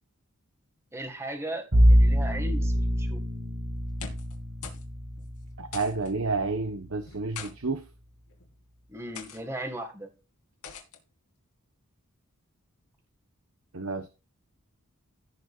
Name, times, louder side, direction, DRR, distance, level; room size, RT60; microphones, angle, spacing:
voice 1, 0.9-3.2 8.9-10.1, right 1 dB, 10° right, 1.8 m, -37 dB
Bowed string instrument, 1.7-6.8, equal, 55° right, 1.9 m, -25 dB
sound 1, 3.8-4.4 4.6-4.9 5.2-5.3 5.7-6.1 7.0-7.5 8.3-8.5 9.1-9.4 10.6-11.0, left 6 dB, 85° left, 2.5 m, -42 dB
voice 2, 5.6-7.8 13.7-14.1, right 3 dB, 70° right, 1.0 m, -30 dB
17.0 x 6.5 x 2.4 m
head